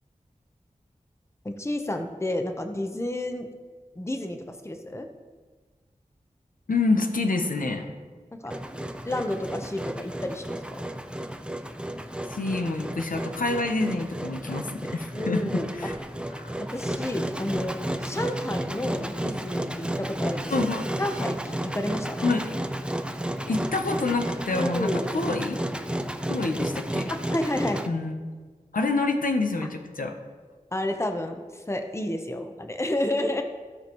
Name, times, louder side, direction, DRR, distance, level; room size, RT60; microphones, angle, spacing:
voice 1, 1.4-3.5 4.0-5.1 8.3-8.6 9.0-10.8 15.1-15.7 16.6-17.7 18.0-20.5 21.0-22.3 24.5-25.1 27.1-27.8 30.7-33.4, left 1 dB, 20° left, 5 dB, 0.8 m, -30 dB
voice 2, 6.7-7.9 12.3-16.0 20.5-20.9 22.2-22.5 23.5-25.6 26.3-27.1 27.9-28.2 28.7-30.1, left 3 dB, 80° left, 4 dB, 0.9 m, -27 dB
Engine, 8.5-27.9, right 1 dB, 5° right, 0.6 m, -32 dB
15.5 x 5.2 x 3.1 m, 1.4 s
wide cardioid pair, 45°, 14 cm